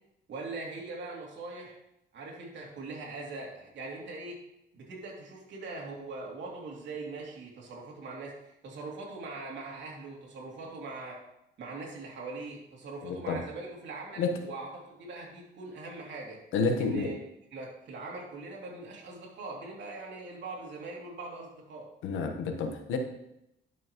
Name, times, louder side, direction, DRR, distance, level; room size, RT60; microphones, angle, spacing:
voice 1, 0.3-1.8 2.1-4.4 4.7-11.2 11.6-16.4 16.8-17.2 17.5-21.9, right 3 dB, 65° right, -2 dB, 2.7 m, -41 dB
voice 2, 13.0-13.4 14.2-14.4 16.5-17.1 22.0-23.0, left 4 dB, 90° left, 5 dB, 1.2 m, -29 dB
11.0 x 6.3 x 3.0 m, 0.83 s
cardioid pair, 90°, 20 cm